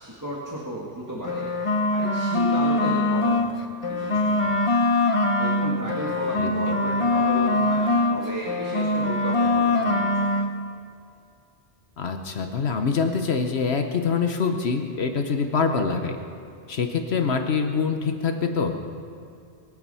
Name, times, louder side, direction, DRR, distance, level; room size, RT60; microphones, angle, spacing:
voice 1, 0.0-1.5 1.9-3.5 3.9-4.7 5.4-10.4, right 1 dB, 15° right, -4 dB, 1.8 m, -34 dB
sound 1, 1.2-3.5 3.8-8.2 8.5-10.5, left 2 dB, 30° left, 1.0 m, -23 dB
voice 2, 12.0-16.2 16.7-18.8, left 5 dB, 70° left, 5 dB, 1.2 m, -25 dB
23.5 x 8.6 x 5.6 m, 2.5 s
omnidirectional pair, 1.1 m